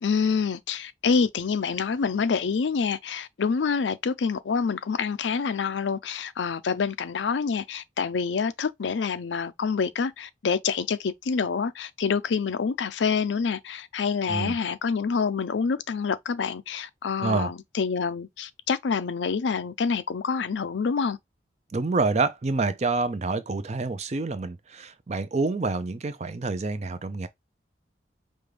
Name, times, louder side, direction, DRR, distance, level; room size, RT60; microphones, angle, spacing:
voice 1, 0.0-21.2, left 5 dB, 85° left, 0.5 m, -27 dB
voice 2, 17.2-17.5 21.7-27.3, right 3 dB, 40° right, 0.5 m, -27 dB
5.2 x 2.3 x 3.3 m
head